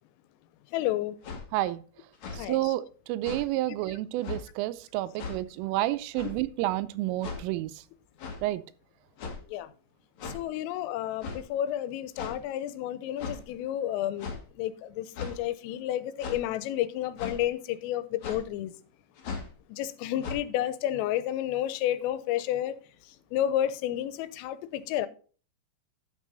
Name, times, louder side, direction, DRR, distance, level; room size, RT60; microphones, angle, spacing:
voice 1, 0.7-1.2 2.4-2.7 9.5-9.7 10.2-14.3 14.6-18.7 19.7-22.7 23.3-25.1, left 12 dB, 90° left, 3.3 m, -31 dB
sound 1, 1.2-1.4 2.1-2.4 3.2-3.4 4.2-4.4 5.2-5.4 6.1-6.4 7.2-7.4 8.2-8.4 9.2-9.5 10.2-10.4 11.2-11.4 12.2-12.4 13.2-13.4 14.2-14.4 15.1-15.4 16.2-16.4 17.2-17.4 18.2-18.4 19.2-19.5 20.2-20.3, left 5 dB, 60° left, 2.0 m, -37 dB
voice 2, 1.5-1.8 2.3-7.7 8.4-8.6, right 16 dB, 90° right, 3.2 m, -30 dB
11.5 x 6.3 x 3.9 m
omnidirectional pair, 5.7 m